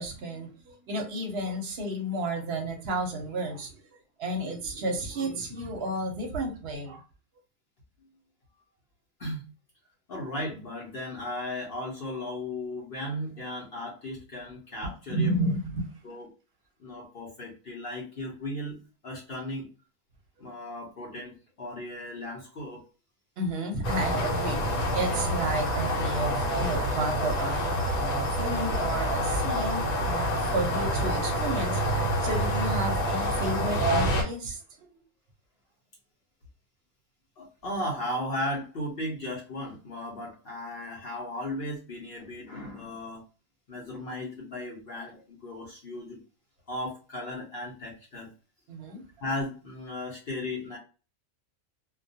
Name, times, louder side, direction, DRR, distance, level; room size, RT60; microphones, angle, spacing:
voice 1, 0.0-3.7 4.2-7.0 15.1-15.9 23.4-24.6 24.9-27.6 27.9-31.8 32.2-34.9 48.7-49.0, right 1 dB, 60° right, 0.8 m, -32 dB
voice 2, 10.1-15.5 16.0-16.3 16.8-18.8 19.0-19.7 20.4-22.8 37.4-43.2 43.7-46.2 46.7-48.3 49.2-50.8, left 1 dB, 55° left, 0.8 m, -36 dB
sound 1, 23.8-34.2, equal, 75° left, 1.1 m, -27 dB
2.3 x 2.2 x 2.6 m
omnidirectional pair, 1.4 m